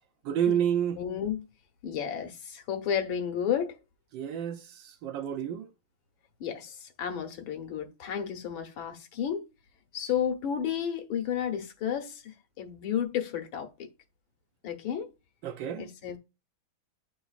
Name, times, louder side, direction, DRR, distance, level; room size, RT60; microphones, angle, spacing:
voice 1, 0.3-1.0 4.1-4.6 5.0-5.7 15.4-15.9, right 9 dB, 70° right, 1.2 m, -29 dB
voice 2, 0.9-1.4 1.8-3.8 6.4-9.4 9.9-13.9 14.6-15.1 15.8-16.2, left 8 dB, 75° left, 1.7 m, -32 dB
10.0 x 3.9 x 2.4 m
omnidirectional pair, 2.3 m